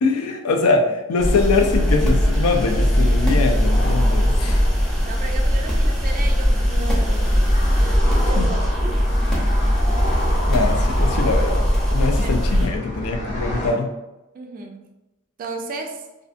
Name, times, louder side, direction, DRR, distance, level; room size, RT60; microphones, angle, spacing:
voice 1, 0.0-4.6 8.4-8.5 10.5-13.9, left 4 dB, 80° left, 4 dB, 0.4 m, -22 dB
sound 1, 1.2-12.7, equal, 5° left, 0.6 m, -19 dB
sound 2, 3.6-13.7, equal, 35° left, 0.8 m, -30 dB
voice 2, 5.0-9.0 12.1-12.5 14.3-14.9 15.4-16.0, right 3 dB, 40° right, 4 dB, 0.3 m, -34 dB
2.5 x 2.5 x 2.4 m, 0.99 s
head